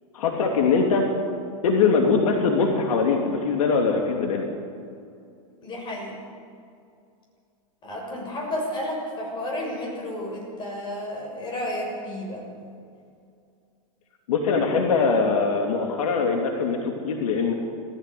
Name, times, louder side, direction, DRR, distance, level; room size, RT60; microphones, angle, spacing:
voice 1, 0.1-1.1 1.6-4.4 14.3-17.5, left 4 dB, 75° left, 2 dB, 2.9 m, -22 dB
voice 2, 5.6-6.2 7.8-12.7, left 1 dB, 25° left, -1 dB, 6.9 m, -32 dB
18.0 x 15.5 x 9.4 m, 2.4 s
supercardioid pair, 140°, 18 cm